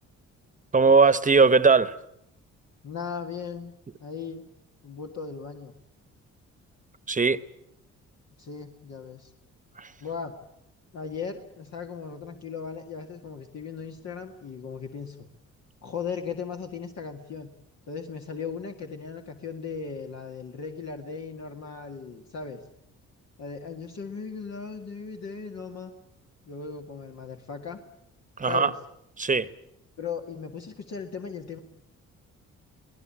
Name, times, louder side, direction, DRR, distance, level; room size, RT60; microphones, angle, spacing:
voice 1, 0.7-1.9 7.1-7.4 9.8-9.9 28.4-28.7 29.2-29.5, right 4 dB, 25° right, 1.2 m, -19 dB
voice 2, 2.8-3.7 4.0-4.5 4.8-5.7 8.4-9.3 10.0-10.4 10.9-15.3 15.8-17.5 17.9-22.6 23.4-25.9 26.5-27.8 28.4-28.8 30.0-31.6, left 5 dB, 60° left, 2.1 m, -37 dB
24.0 x 18.5 x 8.8 m
cardioid pair, 90°, 30 cm